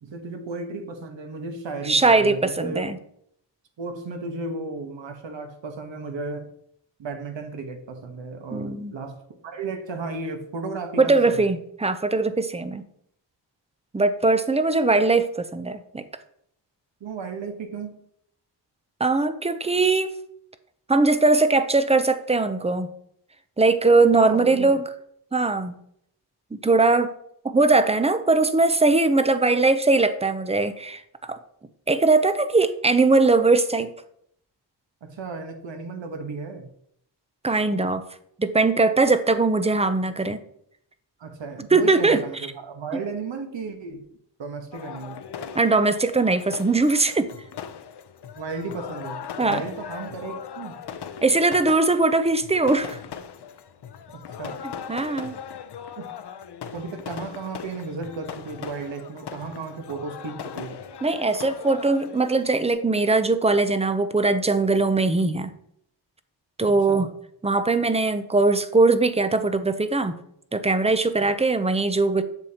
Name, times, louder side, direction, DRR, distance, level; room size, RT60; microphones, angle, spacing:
voice 1, 0.0-2.9 3.8-6.5 7.0-11.5 17.0-17.9 24.2-24.7 35.0-36.7 41.2-44.0 44.4-45.2 48.3-50.8 54.1-54.6 56.0-56.1 56.7-60.8 66.7-67.1 71.2-71.3, right 4 dB, 75° right, 5 dB, 1.3 m, -34 dB
voice 2, 1.9-3.0 8.5-8.9 11.0-12.8 13.9-16.0 19.0-20.2 20.9-22.9 23.6-24.8 25.3-25.7 26.5-27.1 27.4-31.0 31.3-31.4 31.9-33.9 37.4-38.0 38.4-40.4 41.7-42.2 45.5-47.3 49.4-49.6 51.2-53.0 54.9-55.3 61.0-65.5 66.6-67.1 67.4-70.2 70.5-72.2, right 3 dB, 15° right, 11 dB, 0.5 m, -20 dB
sound 1, 44.7-62.7, left 8 dB, 60° left, 0.7 m, -39 dB
8.0 x 6.9 x 2.9 m, 0.70 s
wide cardioid pair, 95°, 45 cm